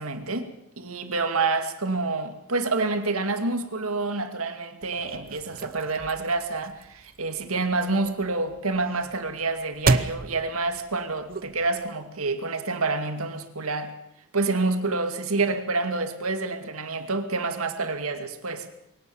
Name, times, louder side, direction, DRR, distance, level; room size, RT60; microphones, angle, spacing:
voice 1, 0.0-13.9 14.3-18.7, right 3 dB, 75° right, 2.2 m, -28 dB
sound 1, 4.8-11.9, right 3 dB, 45° right, 0.8 m, -32 dB
22.0 x 18.0 x 7.1 m
head